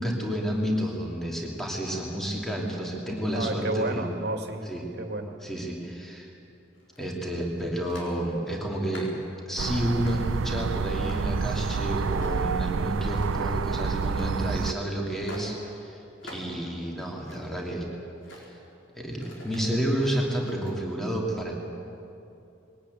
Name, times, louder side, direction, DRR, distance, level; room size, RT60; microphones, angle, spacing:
voice 1, 0.0-4.0 4.7-4.8 5.4-6.3 7.0-9.1 9.5-17.9 18.3-18.6 19.0-21.5, right 1 dB, ahead, -1 dB, 2.9 m, -30 dB
voice 2, 3.3-4.7 5.0-5.4, right 2 dB, 55° right, 4 dB, 2.1 m, -31 dB
sound 1, 6.8-7.3 7.9-8.2 8.7-9.3 10.0-10.3 10.8-11.5 12.1-12.6 13.0-13.5 14.1-14.4 15.2-15.6 16.2-16.5 16.9-17.6 18.2-18.5 19.1-20.8, left 1 dB, 75° left, 4.7 m, -45 dB
sound 2, 9.6-14.7, right 5 dB, 90° right, 0.5 m, -28 dB
21.0 x 18.5 x 9.4 m, 2.8 s
head